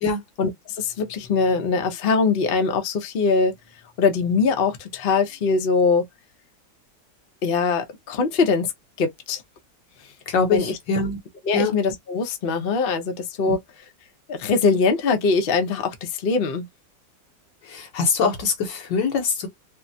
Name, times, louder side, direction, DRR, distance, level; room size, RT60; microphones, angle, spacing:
voice 1, 0.4-3.5 4.0-6.1 7.4-8.7 9.0-9.4 10.5-10.8 11.5-13.6 14.3-16.7, left 4 dB, 50° left, 0.6 m, -22 dB
voice 2, 10.3-11.2 11.5-11.7 13.5-13.6 17.7-19.5, left 4 dB, 80° left, 1.6 m, -23 dB
3.4 x 2.1 x 2.6 m
omnidirectional pair, 1.9 m